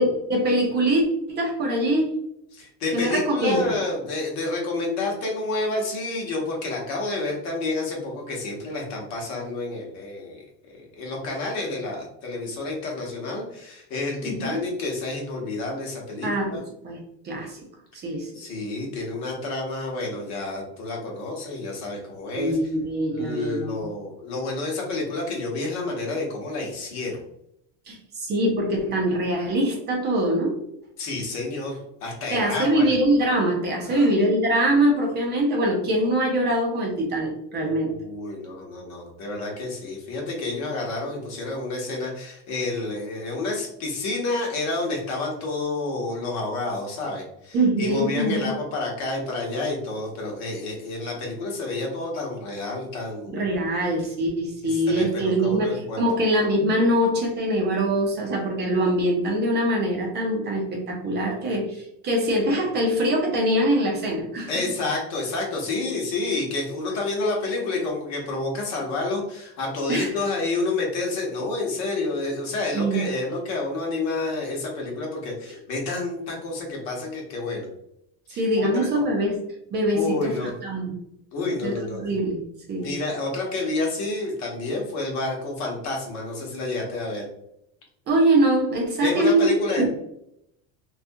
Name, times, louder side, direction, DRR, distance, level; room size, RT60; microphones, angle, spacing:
voice 1, 0.0-2.2 2.9-3.6 14.2-14.6 16.2-17.0 17.2-17.6 18.0-18.3 22.4-23.8 27.9-30.6 32.3-37.9 47.5-48.5 53.3-64.5 69.9-70.1 72.7-73.0 78.4-79.4 79.7-80.9 81.6-82.4 82.7-82.9 88.1-89.5 89.8-89.9, right 1 dB, 30° right, 0 dB, 0.6 m, -23 dB
voice 2, 2.5-10.4 10.7-16.6 18.3-22.6 23.1-27.2 31.0-33.0 33.9-34.1 37.8-53.4 54.6-56.0 64.5-77.7 78.3-79.0 79.9-80.5 81.3-82.1 82.8-87.2 89.0-89.9, left 2 dB, 55° left, -1 dB, 1.0 m, -29 dB
2.4 x 2.3 x 2.6 m, 0.77 s
cardioid pair, 150°, 33 cm